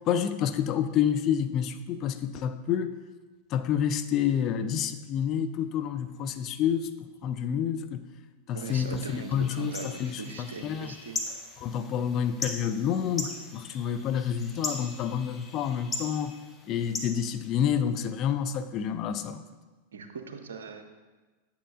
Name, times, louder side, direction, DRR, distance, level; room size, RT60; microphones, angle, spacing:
voice 1, 0.1-3.0 3.5-8.1 8.5-11.0 11.6-16.4 16.7-19.4, left 8 dB, 35° left, 10 dB, 0.4 m, -29 dB
voice 2, 8.5-11.2 19.9-20.9, right 5 dB, 65° right, 7 dB, 0.7 m, -41 dB
sound 1, 8.6-18.0, left 3 dB, 15° left, 1.0 m, -40 dB
8.8 x 8.1 x 2.5 m, 1.3 s
figure-of-eight pair, 90°, 0 cm